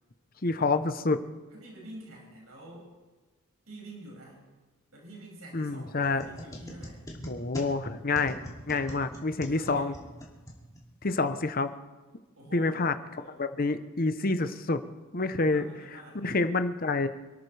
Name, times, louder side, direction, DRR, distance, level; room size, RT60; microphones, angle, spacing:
voice 1, 0.4-1.2 5.5-6.3 7.3-8.4 8.7-10.0 11.0-11.7 12.5-12.9 13.4-14.8 15.1-15.7 16.1-17.1, left 3 dB, 45° left, 10 dB, 0.9 m, -27 dB
voice 2, 1.5-2.9 3.7-4.4 4.9-7.0 9.5-9.9 12.4-13.4 15.4-16.2, right 1 dB, 80° right, -3 dB, 6.6 m, -47 dB
sound 1, 6.0-11.1, equal, 15° left, 2.8 m, -43 dB
27.5 x 13.5 x 3.4 m, 1.2 s
head